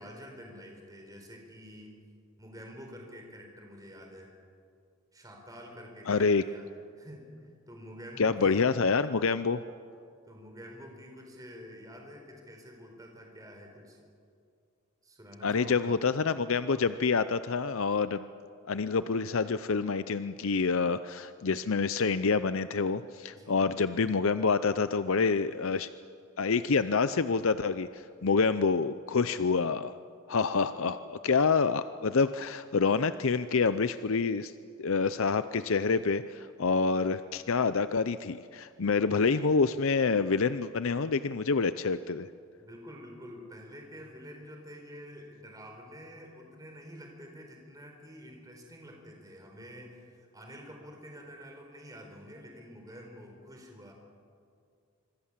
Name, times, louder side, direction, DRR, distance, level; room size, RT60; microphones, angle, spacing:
voice 1, 0.0-2.0 2.4-4.3 5.1-7.3 7.7-8.6 10.2-14.0 15.0-15.9 23.3-23.6 42.6-53.9, equal, 15° right, 2 dB, 4.3 m, -48 dB
voice 2, 6.1-6.4 8.2-9.6 15.4-18.3 18.7-25.9 26.4-29.9 30.3-34.5 34.8-42.3, left 4 dB, 70° left, 13 dB, 0.6 m, -27 dB
26.0 x 24.5 x 7.5 m, 2.3 s
head